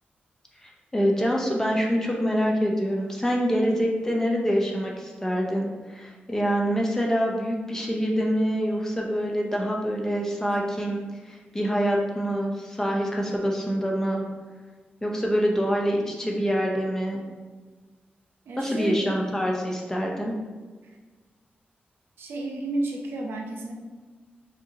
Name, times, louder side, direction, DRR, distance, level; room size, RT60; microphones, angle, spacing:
voice 1, 0.6-14.2 15.0-17.2 18.6-20.3, equal, 15° left, -1 dB, 0.6 m, -25 dB
voice 2, 18.5-19.1 20.8-21.0 22.2-23.7, right 2 dB, 85° right, 0 dB, 0.6 m, -32 dB
5.2 x 2.7 x 2.8 m, 1.4 s
wide cardioid pair, 145°, 4 cm